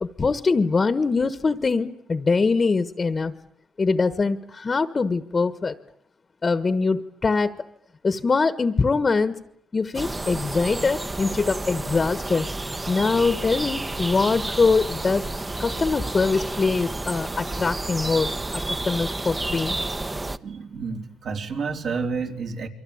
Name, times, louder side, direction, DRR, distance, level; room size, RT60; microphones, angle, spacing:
voice 1, 0.0-3.3 3.8-5.7 6.4-7.5 8.0-9.4 9.7-12.5 12.9-15.2 15.6-19.8, left 4 dB, 30° left, 12 dB, 1.4 m, -23 dB
sound 1, 9.9-20.4, right 2 dB, 20° right, 1.1 m, -30 dB
voice 2, 20.4-22.7, right 5 dB, 60° right, 3 dB, 4.0 m, -30 dB
29.0 x 23.5 x 8.7 m, 0.70 s
cardioid pair, 90°, 0 cm